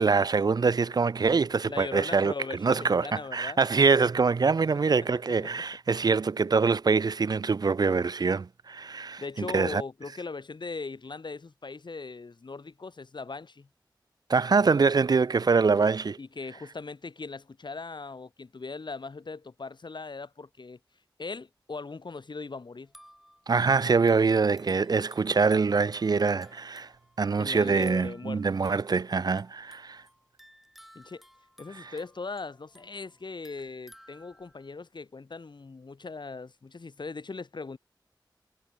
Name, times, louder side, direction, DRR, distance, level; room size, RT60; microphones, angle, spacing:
voice 1, 0.0-2.3 2.6-9.8 14.3-16.2 23.5-26.9 27.2-30.0 31.8-31.9, right 4 dB, 55° right, 0.4 m, -24 dB
voice 2, 1.7-3.6 5.5-5.6 9.2-13.7 16.2-20.8 21.2-22.9 27.4-28.4 30.9-31.2 31.6-37.8, left 4 dB, 70° left, 4.2 m, -39 dB
sound 1, 22.8-34.7, equal, ahead, 6.9 m, -57 dB
wide cardioid pair, 50°, 8 cm